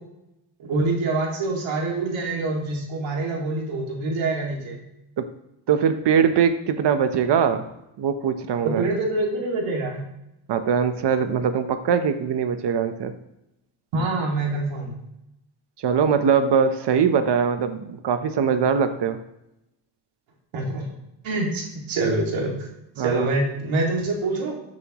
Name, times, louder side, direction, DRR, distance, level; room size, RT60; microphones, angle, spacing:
voice 1, 0.6-4.8 8.6-10.0 13.9-14.9 20.5-20.9 21.2-22.6 23.0-24.5, right 2 dB, 85° right, -1 dB, 2.5 m, -25 dB
voice 2, 5.7-7.7 8.0-8.8 10.5-13.1 15.8-19.2 23.0-23.3, right 7 dB, 60° right, 9 dB, 1.0 m, -22 dB
14.0 x 7.5 x 3.1 m, 0.88 s
cardioid pair, 110°, 46 cm